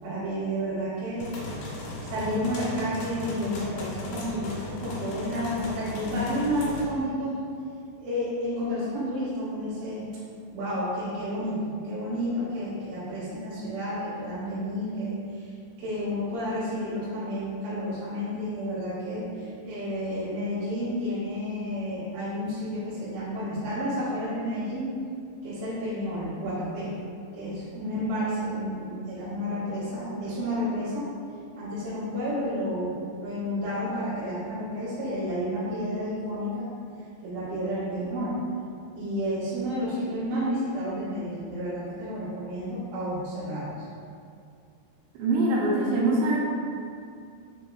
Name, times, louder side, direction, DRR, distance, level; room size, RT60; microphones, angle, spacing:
voice 1, 0.0-1.3 2.0-7.3 8.0-10.0 10.5-15.5 15.8-24.9 25.4-26.9 27.3-31.1 31.6-32.9 33.2-36.7 37.2-38.4 39.0-43.8, equal, 65° right, -12 dB, 2.6 m, -31 dB
sound 1, 1.2-6.8, left 2 dB, 75° left, 3.0 m, -36 dB
voice 2, 45.2-46.4, right 2 dB, 85° right, -5 dB, 2.8 m, -23 dB
6.7 x 3.0 x 2.3 m, 2.3 s
omnidirectional pair, 5.2 m